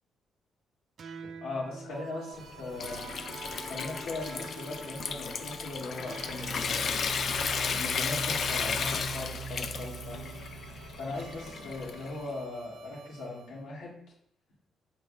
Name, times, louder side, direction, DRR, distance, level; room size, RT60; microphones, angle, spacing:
sound 1, 1.0-13.5, right 5 dB, 55° right, 0.5 m, -44 dB
voice 1, 1.4-3.1 3.7-7.0 7.7-10.4 11.0-13.9, left 2 dB, 85° left, -5 dB, 2.6 m, -39 dB
Water tap faucet / Sink (filling or washing) / Trickle dribble, 2.3-12.3, left 6 dB, 55° left, 0.5 m, -34 dB
8.2 x 4.6 x 2.5 m, 0.71 s
cardioid pair, 90°, 0 cm